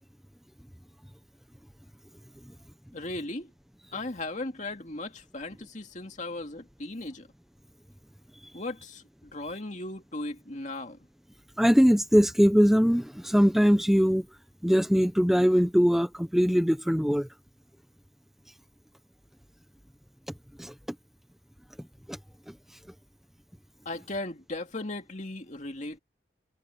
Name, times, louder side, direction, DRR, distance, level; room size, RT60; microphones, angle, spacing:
voice 1, 2.9-3.5 3.9-7.3 8.5-9.0 9.3-11.0 23.9-26.0, left 2 dB, 40° left, 2.4 m, -37 dB
voice 2, 11.6-14.3 14.6-17.3 20.6-20.7 22.1-22.2, equal, ahead, 0.7 m, -22 dB
head